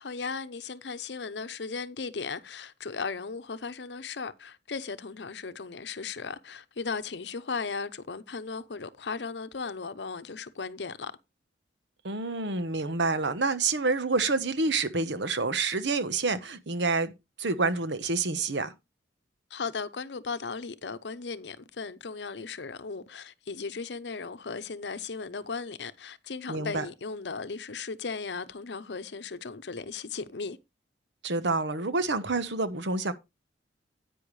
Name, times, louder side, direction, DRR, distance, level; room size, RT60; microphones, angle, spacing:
voice 1, 0.0-11.1 19.5-30.6, left 4 dB, 70° left, 0.8 m, -36 dB
voice 2, 12.0-17.1 17.4-18.7 26.5-26.8 31.2-33.1, right 3 dB, 80° right, 1.1 m, -28 dB
10.0 x 9.1 x 3.2 m
head